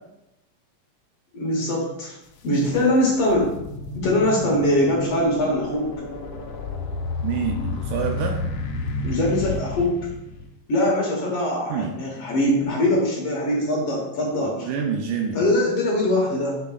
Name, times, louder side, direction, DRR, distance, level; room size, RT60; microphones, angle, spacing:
voice 1, 1.3-2.2 2.4-3.5 3.9-5.9 9.0-9.9 10.7-14.7 15.3-16.6, left 1 dB, 55° left, -2 dB, 1.9 m, -22 dB
sound 1, 2.3-2.4 2.9-10.5, left 2 dB, 70° left, 1.5 m, -31 dB
voice 2, 7.2-8.4 11.7-12.0 14.6-15.5, right 6 dB, 75° right, 3 dB, 2.0 m, -27 dB
7.6 x 6.9 x 2.4 m, 0.89 s
omnidirectional pair, 3.9 m